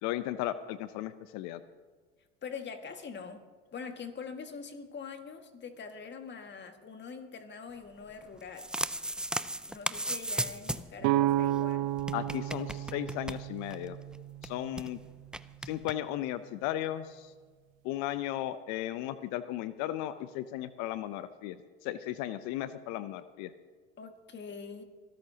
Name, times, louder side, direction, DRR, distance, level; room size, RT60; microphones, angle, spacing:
voice 1, 0.0-1.6 12.1-14.0 14.4-15.0 15.6-17.3 17.8-23.5, left 13 dB, 60° left, 14 dB, 0.7 m, -35 dB
voice 2, 2.4-3.4 3.7-8.7 9.7-11.9 24.0-24.8, left 5 dB, 35° left, 6 dB, 1.9 m, -43 dB
sound 1, 8.3-11.0 11.3-11.4 11.5-11.6 12.0-13.9 14.1-14.2 14.4-14.9 15.3-15.9, right 1 dB, 5° right, 0.4 m, -35 dB
sound 2, 11.0-14.8, right 13 dB, 65° right, 0.7 m, -31 dB
24.5 x 13.0 x 2.9 m, 1.5 s
hypercardioid pair, 75°, 32 cm